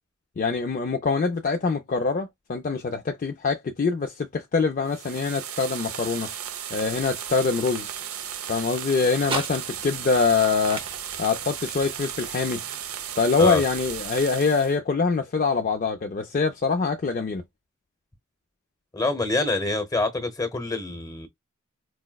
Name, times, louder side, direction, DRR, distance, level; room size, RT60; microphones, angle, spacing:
voice 1, 0.4-6.3 6.7-7.9 8.5-10.8 11.2-12.6 13.2-17.4, left 4 dB, 40° left, 0.4 m, -24 dB
sound 1, 4.8-14.8, right 9 dB, 90° right, 0.6 m, -35 dB
sound 2, 6.4-14.6, right 3 dB, 25° right, 0.6 m, -41 dB
voice 2, 18.9-21.3, left 2 dB, 20° left, 0.8 m, -26 dB
4.7 x 2.0 x 2.2 m
head